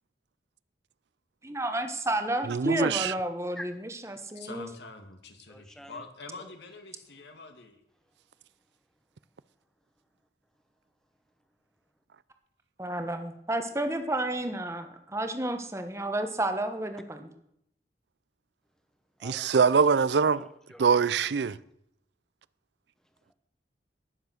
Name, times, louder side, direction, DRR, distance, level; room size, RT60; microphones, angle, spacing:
voice 1, 1.4-4.7 12.8-17.3, right 1 dB, 15° right, 1.2 m, -31 dB
voice 2, 2.5-3.1 19.2-20.5 20.8-21.6, right 5 dB, 80° right, 0.5 m, -23 dB
voice 3, 4.4-7.8, left 3 dB, 80° left, 2.1 m, -45 dB
voice 4, 5.5-6.0 6.4-6.5 19.2-19.7 20.2-21.1, left 1 dB, 5° left, 0.9 m, -47 dB
19.0 x 7.3 x 6.4 m
head